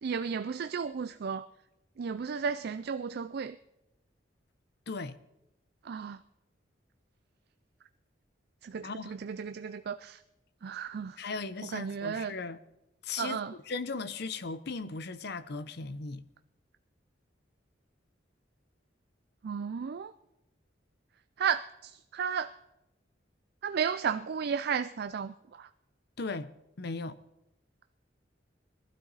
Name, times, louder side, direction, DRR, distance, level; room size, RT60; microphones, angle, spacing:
voice 1, 0.0-1.5 2.0-3.6 5.9-6.2 8.6-10.2 10.6-11.2 11.6-12.3 13.2-13.5 19.4-20.1 21.4-22.5 23.6-25.7, right 6 dB, 60° right, 0.4 m, -33 dB
voice 2, 4.9-5.2 8.8-9.1 11.2-12.6 13.0-16.2 26.2-26.5 26.8-27.2, left 4 dB, 60° left, 0.7 m, -37 dB
21.0 x 12.5 x 4.1 m
head